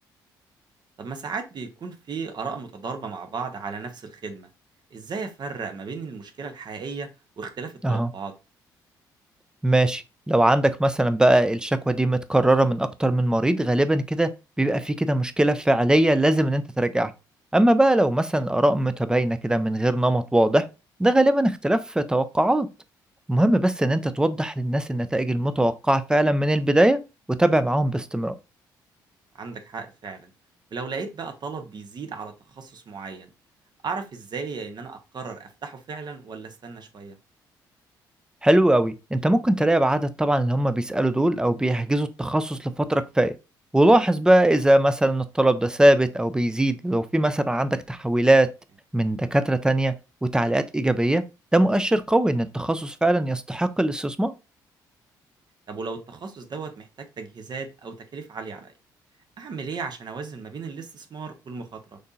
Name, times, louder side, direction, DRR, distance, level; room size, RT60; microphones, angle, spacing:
voice 1, 1.0-4.5 4.9-7.1 7.4-8.3 29.3-30.3 30.7-33.3 33.8-37.2 55.7-58.7 59.4-62.0, right 4 dB, 45° right, 1.0 m, -35 dB
voice 2, 9.6-14.3 14.6-17.1 17.5-20.6 21.0-22.7 23.3-27.0 27.3-28.3 38.4-43.3 43.7-48.5 48.9-49.9 50.2-51.2 51.5-54.3, right 1 dB, 10° right, 0.6 m, -21 dB
6.4 x 2.8 x 2.4 m
hypercardioid pair, 55°, 10 cm